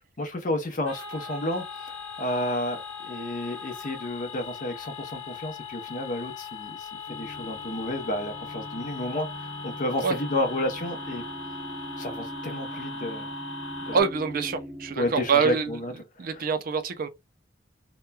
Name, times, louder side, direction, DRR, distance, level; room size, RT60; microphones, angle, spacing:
voice 1, 0.2-11.2 12.0-13.3 13.9-14.0 15.0-15.9 16.2-16.5, left 1 dB, 45° left, 0.6 m, -31 dB
sound 1, 0.9-14.0, left 4 dB, 85° left, 0.9 m, -39 dB
sound 2, 7.1-15.7, equal, 5° right, 0.9 m, -42 dB
voice 2, 13.9-15.7 16.2-17.1, right 5 dB, 50° right, 0.4 m, -25 dB
2.9 x 2.1 x 2.2 m
head